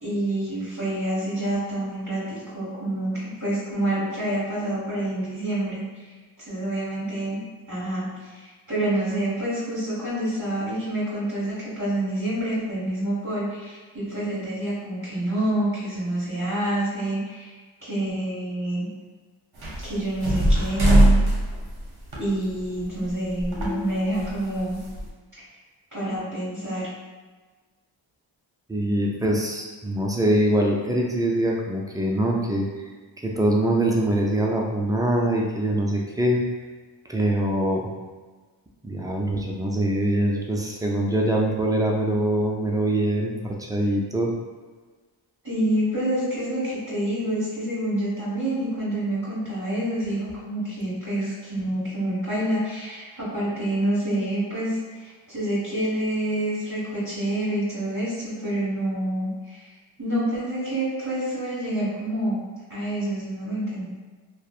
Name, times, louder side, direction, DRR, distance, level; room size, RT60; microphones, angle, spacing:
voice 1, 0.0-5.8 6.4-7.4 7.7-17.5 17.8-18.9 19.8-21.2 22.2-24.8 25.9-26.9 45.4-59.6 60.0-62.4 62.7-63.8, right 1 dB, 35° right, -12 dB, 1.3 m, -27 dB
sound 1, 19.6-23.1 23.4-25.1, right 1 dB, 55° right, 0.8 m, -21 dB
voice 2, 28.7-32.7 33.2-36.4 37.1-37.9 38.8-44.3, right 1 dB, 10° right, -1 dB, 0.3 m, -23 dB
2.6 x 2.1 x 2.3 m, 1.4 s
cardioid pair, 55°, 47 cm